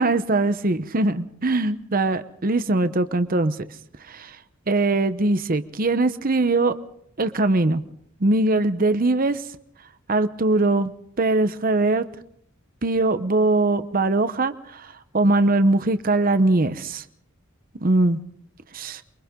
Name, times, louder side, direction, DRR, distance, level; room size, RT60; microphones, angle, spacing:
voice 1, 0.0-4.4 4.7-6.7 7.2-7.8 8.2-9.4 10.1-10.9 11.2-12.0 12.8-17.0 17.8-18.2 18.7-19.0, right 2 dB, 45° right, 11 dB, 0.9 m, -21 dB
29.0 x 23.5 x 3.8 m, 0.66 s
head